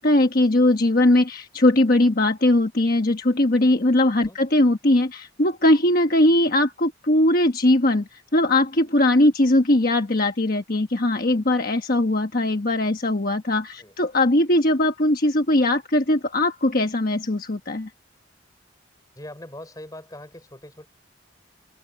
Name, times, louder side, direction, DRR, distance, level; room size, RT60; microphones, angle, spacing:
voice 1, 0.0-17.9, left 1 dB, 45° left, 1.3 m, -20 dB
voice 2, 19.1-20.9, left 1 dB, 20° left, 6.2 m, -41 dB
head